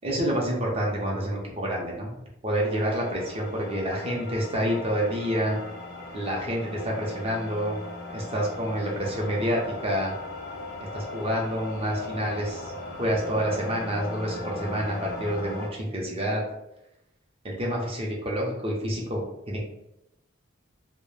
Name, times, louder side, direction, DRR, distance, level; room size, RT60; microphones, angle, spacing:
voice 1, 0.0-2.1 2.4-5.6 6.1-7.8 8.1-10.1 10.9-12.7 13.0-16.4 17.4-19.6, equal, 30° right, -2 dB, 0.5 m, -28 dB
sound 1, 2.6-15.7, left 2 dB, 50° left, 0.4 m, -38 dB
2.2 x 2.0 x 3.1 m, 0.85 s
head